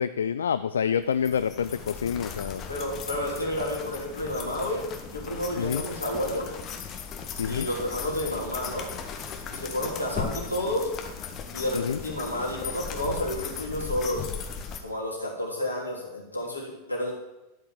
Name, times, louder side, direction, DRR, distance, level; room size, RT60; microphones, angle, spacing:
voice 1, 0.0-2.6 5.6-5.8 7.4-7.7 11.7-12.0, left 7 dB, 70° left, 14 dB, 0.3 m, -27 dB
sound 1, 1.1-14.8, left 6 dB, 30° left, 1.5 m, -37 dB
voice 2, 2.7-4.8 5.1-6.5 7.4-8.9 9.5-10.9 11.5-14.3 14.8-17.1, left 1 dB, 85° left, -4 dB, 3.2 m, -30 dB
12.0 x 5.6 x 7.3 m, 1.0 s
figure-of-eight pair, 90°, 0 cm